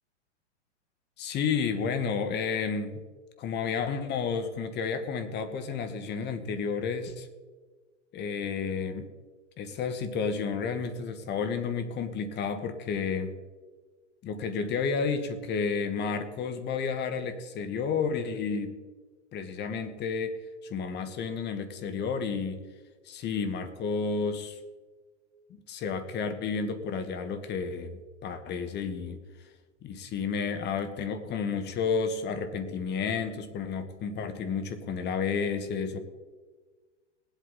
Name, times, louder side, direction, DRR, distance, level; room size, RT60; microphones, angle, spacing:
voice 1, 1.2-3.0 3.4-7.3 8.1-9.1 9.6-13.3 14.2-18.8 19.3-20.4 20.7-22.6 23.0-24.6 25.5-29.2 29.8-36.0, left 5 dB, 30° left, 10 dB, 1.3 m, -31 dB
20.0 x 8.3 x 4.0 m, 1.4 s
hypercardioid pair, 120°, 36 cm